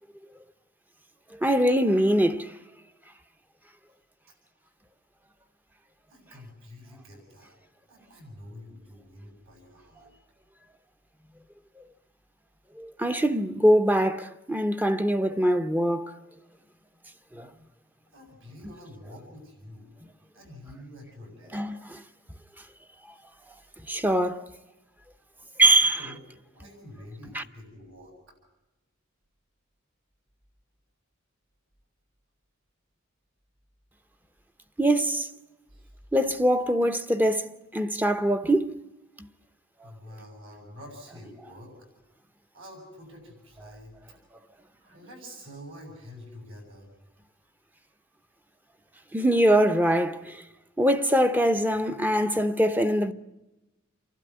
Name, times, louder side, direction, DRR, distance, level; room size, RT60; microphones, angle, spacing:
voice 1, 1.3-2.6 12.8-16.1 17.3-17.5 21.5-22.0 23.9-24.5 25.6-26.0 27.3-27.4 34.8-35.3 36.1-38.7 39.2-39.3 39.8-39.9 49.1-50.4 50.8-53.1, right 1 dB, 10° right, 0.7 m, -23 dB
voice 2, 6.1-7.6 7.9-10.1 18.1-19.9 20.3-21.6 25.9-26.2 26.5-28.4 35.7-35.9 39.8-41.9 42.5-44.2 44.8-46.9, left 1 dB, 70° right, 7.9 m, -47 dB
29.0 x 12.0 x 9.6 m
head